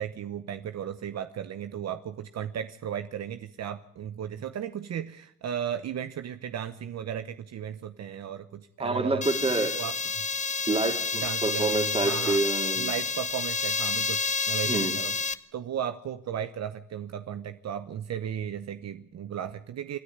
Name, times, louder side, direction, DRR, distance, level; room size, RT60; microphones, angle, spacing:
voice 1, 0.0-9.2 9.7-9.9 11.2-12.4 12.8-15.2 15.5-20.0, right 9 dB, 60° right, 10 dB, 1.0 m, -35 dB
voice 2, 8.8-9.8 10.7-12.9 14.6-15.0, right 2 dB, 20° right, 6 dB, 2.9 m, -27 dB
sound 1, 9.2-15.3, left 4 dB, 25° left, 1.0 m, -29 dB
27.5 x 10.0 x 9.5 m, 0.72 s
cardioid pair, 90°, 30 cm